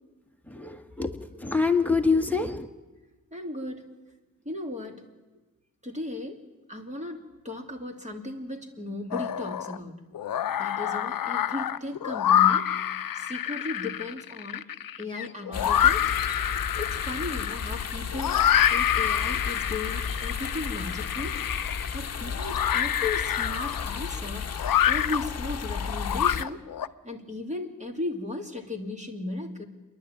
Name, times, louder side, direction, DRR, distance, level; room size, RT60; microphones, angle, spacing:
voice 1, 0.4-2.7, left 4 dB, 5° left, 4 dB, 1.6 m, -26 dB
voice 2, 3.3-3.8 4.4-5.0 5.8-6.4 6.7-10.0 10.6-12.7 13.1-14.7 15.0-16.1 16.8-18.4 18.7-21.4 21.9-24.5 24.9-26.6 27.0-29.6, left 2 dB, 20° right, 3 dB, 2.8 m, -36 dB
sound 1, 9.1-9.8 10.1-26.9, left 10 dB, 75° left, 0.7 m, -27 dB
sound 2, 15.5-26.4, left 6 dB, 50° left, 1.0 m, -34 dB
29.0 x 11.5 x 9.0 m, 1.2 s
wide cardioid pair, 90°, 34 cm